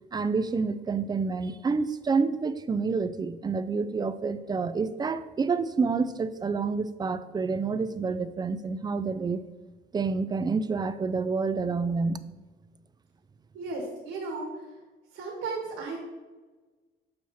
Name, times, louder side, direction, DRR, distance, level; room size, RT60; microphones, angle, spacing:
voice 1, 0.1-9.4 9.9-12.3, right 4 dB, 20° right, 0.3 m, -28 dB
voice 2, 13.5-14.6 15.1-16.0, right 3 dB, 80° right, 1.4 m, -35 dB
6.4 x 2.8 x 5.6 m
cardioid pair, 90°, 20 cm